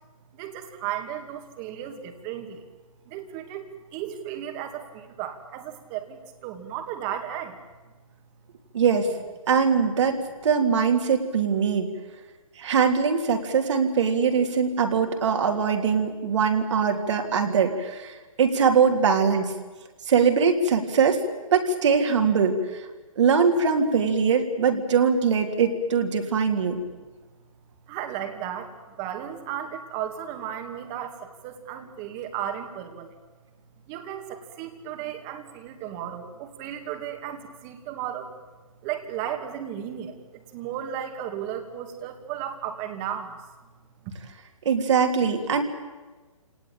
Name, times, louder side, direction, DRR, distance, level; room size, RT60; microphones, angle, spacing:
voice 1, 0.3-2.6 3.1-7.6 26.9-27.1 27.9-33.1 33.9-38.3 38.8-43.4 44.0-44.1, right 10 dB, 25° right, 5 dB, 2.6 m, -35 dB
voice 2, 8.7-9.1 9.5-10.2 10.4-11.9 12.6-19.5 20.1-21.2 21.5-22.6 23.2-26.8 44.7-45.6, right 6 dB, 55° right, 4 dB, 3.4 m, -22 dB
28.0 x 19.0 x 9.0 m, 1.3 s
hypercardioid pair, 145°, 18 cm